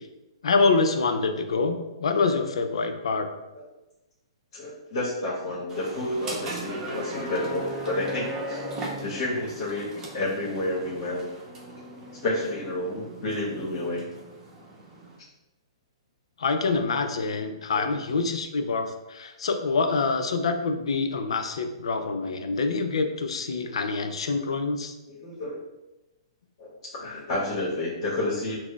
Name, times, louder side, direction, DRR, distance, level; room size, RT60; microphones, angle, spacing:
voice 1, 0.4-3.3 16.4-24.9, left 4 dB, 80° left, 7 dB, 0.4 m, -26 dB
voice 2, 4.5-8.6 9.0-11.2 12.2-14.1 17.7-17.8 25.1-25.6 26.6-28.5, left 1 dB, 60° left, -7 dB, 1.1 m, -30 dB
sound 1, 5.7-15.2, right 1 dB, 15° right, 0.7 m, -38 dB
6.0 x 2.0 x 2.3 m, 1.0 s
hypercardioid pair, 140°, 3 cm